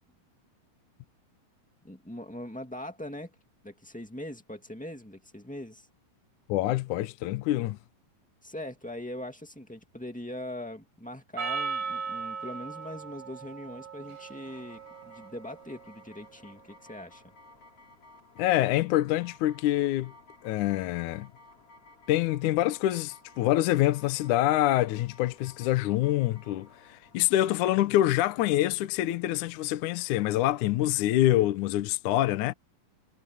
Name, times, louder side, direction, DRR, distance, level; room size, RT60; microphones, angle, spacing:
voice 1, 1.8-3.3 3.6-5.9 8.4-17.2, left 1 dB, 5° left, 0.6 m, -41 dB
voice 2, 6.5-7.8 18.4-20.1 20.4-21.3 22.1-32.5, left 14 dB, 70° left, 2.0 m, -26 dB
Percussion, 11.4-16.0, right 5 dB, 85° right, 6.6 m, -37 dB
sound 1, 14.4-29.4, left 2 dB, 40° left, 4.5 m, -56 dB
omnidirectional pair, 4.2 m